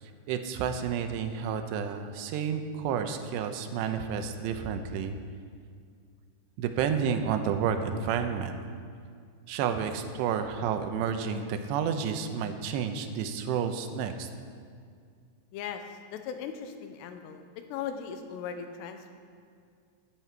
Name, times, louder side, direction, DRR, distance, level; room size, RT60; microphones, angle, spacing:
voice 1, 0.3-5.2 6.6-8.5 9.5-14.3, right 7 dB, 90° right, 7 dB, 3.0 m, -30 dB
voice 2, 15.5-17.4 17.7-19.2, left 7 dB, 85° left, 7 dB, 3.1 m, -38 dB
15.5 x 11.0 x 4.6 m, 2.2 s
omnidirectional pair, 4.9 m